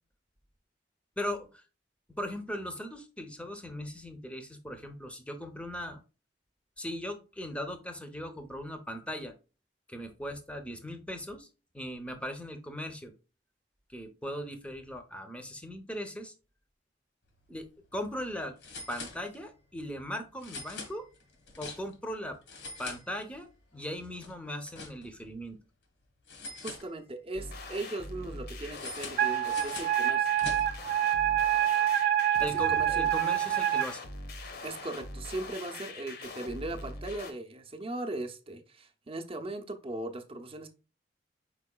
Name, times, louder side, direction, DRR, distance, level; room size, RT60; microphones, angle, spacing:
voice 1, 1.2-1.6 2.1-6.0 6.8-9.3 9.9-11.5 11.7-13.1 13.9-16.3 17.5-17.7 17.9-18.6 18.9-21.0 21.6-22.4 22.8-25.6 32.4-34.0, equal, 5° left, 7 dB, 0.7 m, -38 dB
sound 1, 17.4-17.6 17.9-18.0 18.6-19.6 20.4-22.1 22.4-23.6 23.9-25.3 26.3-27.4 28.7-30.9, left 4 dB, 85° left, 1.3 m, -44 dB
voice 2, 26.6-30.4 32.4-33.1 34.6-40.7, right 2 dB, 35° right, 5 dB, 0.7 m, -38 dB
sound 2, 27.3-37.3, left 2 dB, 65° left, 0.9 m, -43 dB
Wind instrument woodwind instrument, 29.2-33.9, right 11 dB, 60° right, 0.4 m, -26 dB
4.7 x 4.6 x 2.2 m, 0.32 s
head